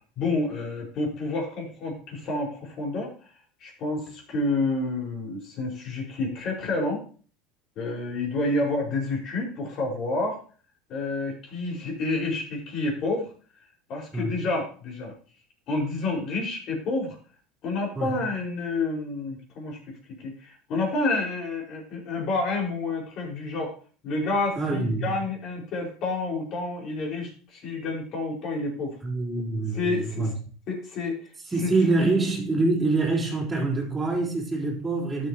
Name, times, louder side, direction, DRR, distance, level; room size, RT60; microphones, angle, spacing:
voice 1, 0.2-3.1 3.6-7.0 7.8-10.4 10.9-13.3 13.9-15.1 15.7-17.2 17.6-19.8 20.2-23.7 24.0-29.0 29.7-30.3 30.7-31.1 31.6-31.7 32.0-32.1, left 2 dB, 45° left, 5.2 m, -29 dB
voice 2, 24.6-25.1 29.0-30.3 31.5-35.3, right 3 dB, 10° right, 3.7 m, -25 dB
12.5 x 7.4 x 3.0 m
supercardioid pair, 125°, 0 cm